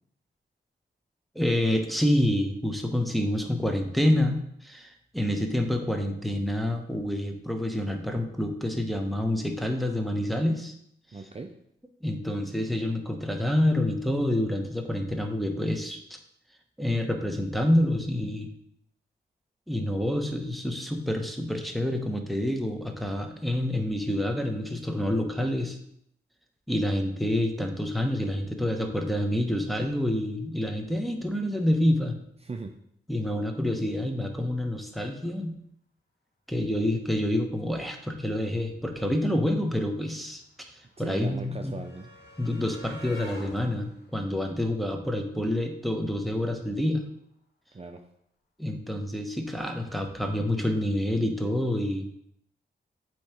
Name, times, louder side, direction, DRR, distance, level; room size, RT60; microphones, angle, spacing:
voice 1, 1.3-10.7 12.0-16.2 16.8-18.5 19.7-25.8 26.7-32.2 33.1-35.5 36.5-40.4 41.0-41.7 42.4-47.0 48.6-52.1, left 1 dB, ahead, 3 dB, 1.1 m, -27 dB
voice 2, 11.1-11.5 32.4-32.8 41.0-42.1 47.7-48.0, right 3 dB, 30° right, 3 dB, 0.6 m, -38 dB
sound 1, 39.5-45.5 46.7-46.8 47.1-47.2, left 1 dB, 60° left, 1.8 m, -49 dB
8.4 x 3.1 x 4.4 m, 0.72 s
cardioid pair, 50°, 20 cm